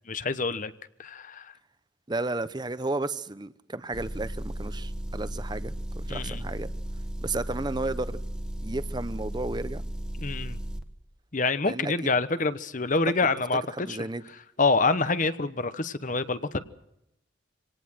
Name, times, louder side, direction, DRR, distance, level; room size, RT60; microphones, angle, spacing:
voice 1, 0.1-0.7 1.0-1.5 6.1-6.4 10.2-10.6 11.3-14.0 14.6-16.6, left 3 dB, 40° left, 1.0 m, -26 dB
voice 2, 2.1-6.7 7.2-8.2 8.6-9.8 11.6-12.1 13.8-14.2, right 2 dB, 20° right, 0.8 m, -33 dB
Motor vehicle (road) / Engine, 3.9-10.8, right 1 dB, 5° right, 1.4 m, -35 dB
25.5 x 18.5 x 6.2 m
head